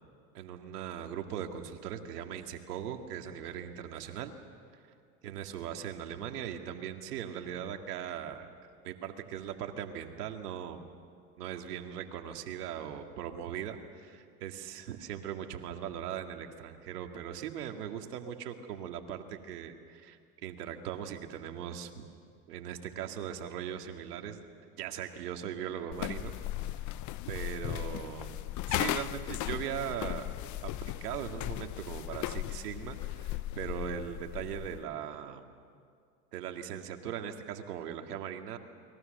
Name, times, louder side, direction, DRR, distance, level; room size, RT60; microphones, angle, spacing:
voice 1, 0.3-4.3 5.2-8.6 8.8-10.9 11.4-22.0 22.5-26.4 27.3-30.3 30.6-35.5 36.3-38.6, right 9 dB, 80° right, 5 dB, 2.3 m, -39 dB
sound 1, 25.9-34.8, left 14 dB, 40° left, 0.8 m, -37 dB
29.5 x 22.0 x 6.7 m, 2.2 s
hypercardioid pair, 105°, 46 cm